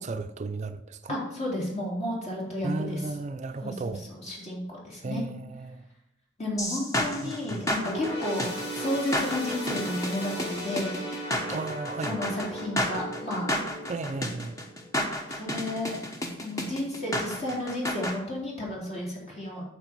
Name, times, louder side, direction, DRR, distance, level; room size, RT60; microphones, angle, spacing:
voice 1, 0.0-1.2 2.6-4.1 5.0-5.9 7.2-7.6 11.5-12.2 13.9-14.6, right 3 dB, 40° right, 0.4 m, -34 dB
voice 2, 1.1-3.0 3.6-5.2 6.4-11.0 12.1-13.5 15.3-16.0 16.4-19.6, left 1 dB, 40° left, 3.8 m, -32 dB
sound 1, 6.6-18.2, left 1 dB, 20° left, 1.1 m, -31 dB
sound 2, 7.8-15.5 15.9-16.1 16.9-17.0, equal, 65° left, 3.6 m, -37 dB
9.0 x 6.7 x 4.5 m
head